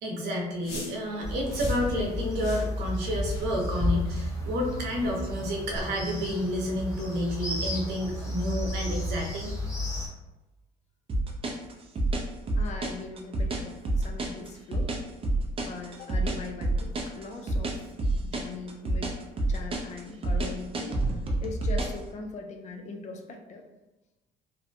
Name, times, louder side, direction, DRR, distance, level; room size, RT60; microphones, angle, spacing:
voice 1, 0.0-9.5, equal, 80° right, -1 dB, 0.7 m, -30 dB
sound 1, 0.6-1.0 1.5-1.8 2.4-2.7 3.2-3.5 4.1-4.3 5.0-5.1 5.7-5.9, left 1 dB, 65° left, 1.0 m, -40 dB
sound 2, 1.2-10.1, left 1 dB, 20° left, 0.8 m, -32 dB
sound 3, 11.1-22.0, right 2 dB, 35° right, 0.5 m, -28 dB
voice 2, 12.6-14.9 15.6-17.8 18.2-19.1 19.5-23.6, left 3 dB, 45° left, 4 dB, 0.4 m, -40 dB
2.6 x 2.1 x 2.6 m, 1.1 s
cardioid pair, 110°, 17 cm